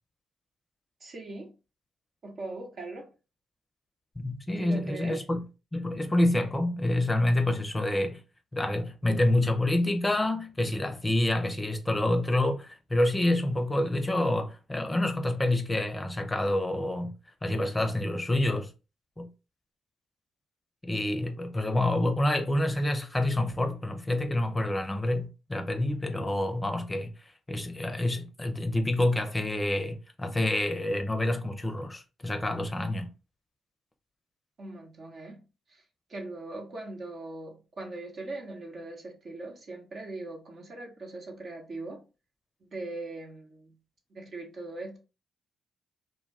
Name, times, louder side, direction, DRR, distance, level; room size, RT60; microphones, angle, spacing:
voice 1, 1.0-1.5 2.2-3.1 4.6-5.2 34.6-35.4 35.7-35.8 36.1-42.0 42.7-43.7 44.1-45.0, right 2 dB, 55° right, 0.9 m, -40 dB
voice 2, 4.2-5.4 5.7-8.2 8.5-17.1 17.4-18.7 19.2-19.3 20.8-27.1 27.5-33.1, left 1 dB, 25° left, 0.6 m, -27 dB
2.2 x 2.2 x 3.3 m
hypercardioid pair, 50°, 0 cm